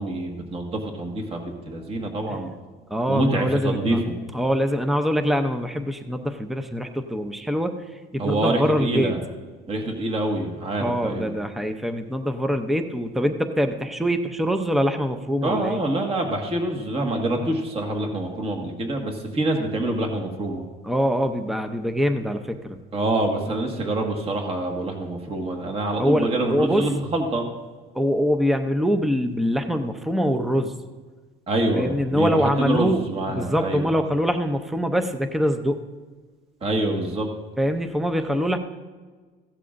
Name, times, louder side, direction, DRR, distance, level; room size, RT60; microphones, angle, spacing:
voice 1, 0.0-2.5 3.1-4.2 8.2-9.2 9.7-11.3 15.4-20.6 22.9-27.5 31.5-33.9 36.6-37.3, right 1 dB, 30° right, 2 dB, 1.6 m, -26 dB
voice 2, 2.9-4.0 4.3-7.7 8.1-9.1 10.8-15.8 20.8-22.8 26.0-26.9 27.9-30.7 31.8-35.8 37.6-38.6, equal, ahead, 7 dB, 0.6 m, -24 dB
16.0 x 11.5 x 2.6 m, 1.4 s
cardioid pair, 130°, 20 cm